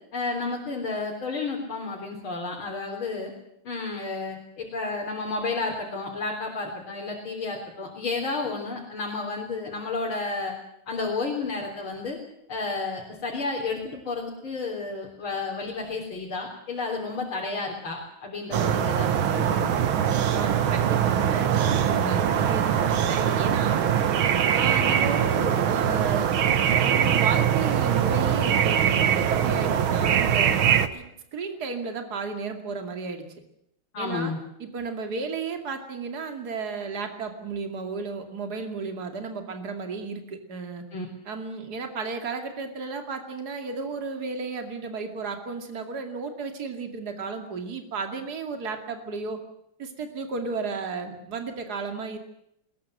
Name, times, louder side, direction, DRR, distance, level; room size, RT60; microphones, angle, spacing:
voice 1, 0.1-3.3 3.6-10.5 10.9-12.2 12.5-19.8 22.0-22.2 23.7-24.0 33.9-34.4 40.9-41.1, left 3 dB, 70° left, -1 dB, 4.4 m, -31 dB
sound 1, 18.5-30.9, right 9 dB, 70° right, 2.0 m, -22 dB
voice 2, 20.3-23.8 24.5-26.3 26.8-30.6 30.9-31.0 31.3-33.2 34.0-34.3 34.6-40.9 41.3-49.4 49.8-52.2, right 4 dB, 45° right, 5 dB, 3.0 m, -33 dB
21.5 x 20.5 x 7.7 m, 0.78 s
omnidirectional pair, 2.4 m